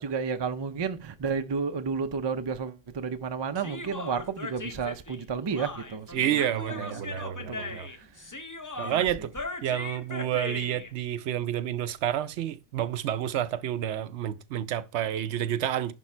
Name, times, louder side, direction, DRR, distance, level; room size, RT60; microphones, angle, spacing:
voice 1, 0.0-6.1 6.8-7.8 8.8-9.0, right 5 dB, 40° right, 0.4 m, -32 dB
Human voice, 3.6-10.9, left 3 dB, 20° left, 0.5 m, -39 dB
voice 2, 6.1-7.9 8.8-9.3 9.6-15.9, right 11 dB, 75° right, 0.9 m, -29 dB
11.0 x 3.6 x 4.3 m
omnidirectional pair, 1.2 m